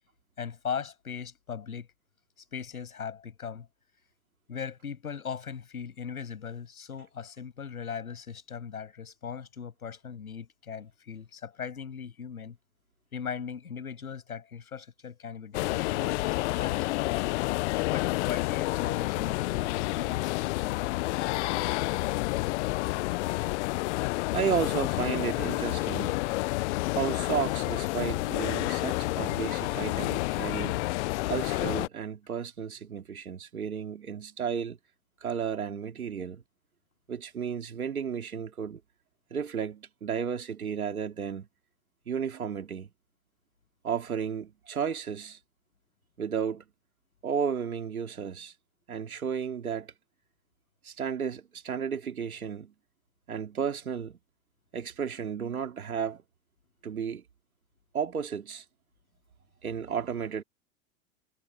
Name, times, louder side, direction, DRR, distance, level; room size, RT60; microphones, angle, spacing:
voice 1, 0.4-1.9 2.5-3.7 4.5-12.6 13.1-17.2 17.9-20.9, left 7 dB, 85° left, 7.5 m, -39 dB
sound 1, 15.5-31.9, left 21 dB, 55° left, 0.9 m, -29 dB
voice 2, 24.3-26.2 26.9-30.9 31.3-34.8 35.2-36.4 37.1-38.8 39.3-41.5 42.1-42.9 43.8-45.4 46.2-46.6 47.2-48.5 48.9-49.9 50.8-52.7 53.3-54.2 54.7-56.2 56.8-57.2 57.9-58.6 59.6-60.4, right 7 dB, 90° right, 3.0 m, -33 dB
hypercardioid pair, 105°, 42 cm